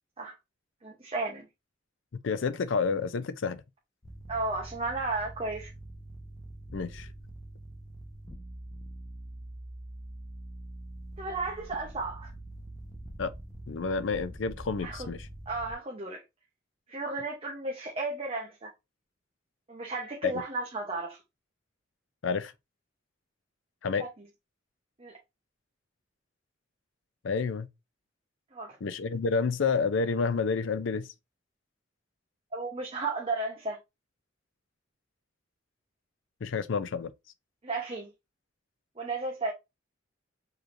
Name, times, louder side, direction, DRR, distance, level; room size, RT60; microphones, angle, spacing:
voice 1, 0.8-1.5 4.3-5.7 11.2-12.3 14.8-15.1 15.5-16.2 16.9-18.7 19.7-21.2 24.0-24.1 25.0-25.2 28.5-28.8 32.5-33.8 37.6-38.1 39.0-39.5, right 3 dB, 30° right, 0.8 m, -34 dB
voice 2, 2.2-3.6 6.7-7.1 13.2-13.3 13.7-15.2 20.2-20.3 22.2-22.5 23.8-24.1 27.2-27.7 28.8-31.1 36.4-37.1, left 5 dB, 75° left, 0.5 m, -29 dB
sound 1, 4.0-15.7, right 1 dB, 20° left, 0.9 m, -44 dB
4.7 x 3.1 x 2.5 m
head